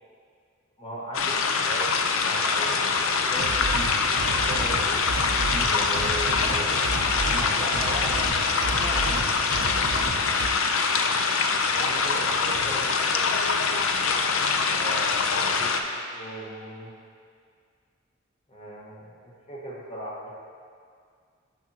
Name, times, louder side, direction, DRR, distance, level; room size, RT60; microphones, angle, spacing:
voice 1, 0.8-1.9 2.1-3.5 4.1-5.0 5.6-8.2 8.5-9.1 11.7-13.0 14.7-16.9 18.5-20.3, right 1 dB, 30° left, -5 dB, 1.4 m, -38 dB
sound 1, 1.1-15.8, left 5 dB, 75° left, 0.5 m, -24 dB
sound 2, 3.4-10.5, right 2 dB, 65° right, 0.5 m, -32 dB
9.4 x 6.0 x 2.9 m, 2.1 s
head